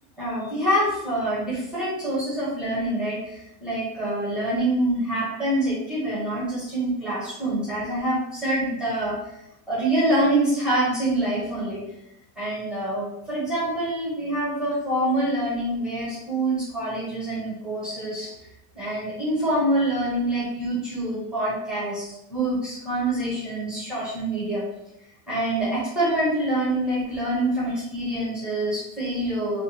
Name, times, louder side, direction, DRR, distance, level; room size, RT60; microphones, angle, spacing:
voice 1, 0.2-9.2 9.7-11.8 12.4-18.3 18.7-24.6 25.3-29.6, right 1 dB, ahead, -8 dB, 1.0 m, -26 dB
3.7 x 2.6 x 4.0 m, 0.84 s
cardioid pair, 180°, 39 cm